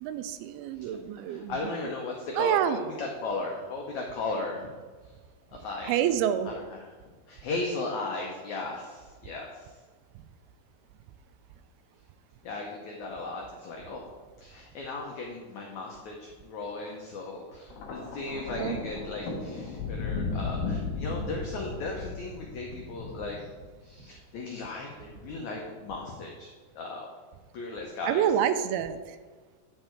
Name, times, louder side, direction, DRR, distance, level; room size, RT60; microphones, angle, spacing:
voice 1, 0.0-1.5 2.4-2.8 5.9-6.5 18.6-18.8 28.1-29.0, right 10 dB, 85° right, 11 dB, 2.4 m, -27 dB
voice 2, 1.3-4.7 5.5-6.0 6.4-6.9 7.3-9.7 12.4-14.0 14.4-23.4 23.8-26.5 26.7-27.1 27.5-28.4, left 3 dB, 85° left, 0 dB, 1.6 m, -36 dB
Thunder, 17.7-24.1 25.0-25.3, left 4 dB, 65° left, 2.8 m, -35 dB
9.0 x 6.7 x 4.5 m, 1.4 s
omnidirectional pair, 4.6 m